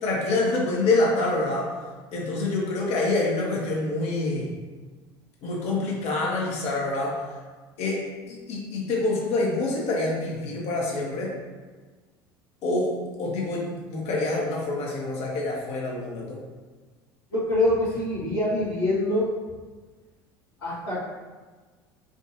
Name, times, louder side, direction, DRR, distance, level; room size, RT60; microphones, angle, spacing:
voice 1, 0.0-1.7 2.1-4.5 5.4-7.2 7.8-11.3 12.6-16.4, left 2 dB, 55° left, -3 dB, 1.2 m, -26 dB
voice 2, 17.3-19.3 20.6-21.0, left 1 dB, 90° left, -14 dB, 1.5 m, -24 dB
5.1 x 2.6 x 2.7 m, 1.4 s
hypercardioid pair, 75°, 13 cm